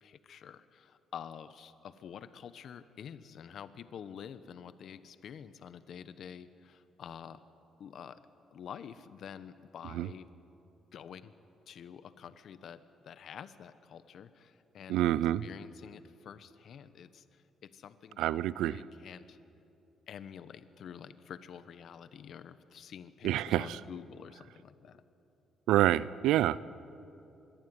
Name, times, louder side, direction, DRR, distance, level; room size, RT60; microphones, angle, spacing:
voice 1, 0.0-7.4 7.8-8.2 8.5-10.3 10.9-11.3 11.7-15.0 15.4-19.4 20.1-25.0, left 8 dB, 60° left, 13 dB, 1.0 m, -48 dB
voice 2, 14.9-15.4 18.2-18.8 23.2-23.8 25.7-26.6, right 13 dB, 90° right, 18 dB, 0.5 m, -27 dB
25.0 x 22.0 x 9.6 m, 2.8 s
cardioid pair, 100°, 0 cm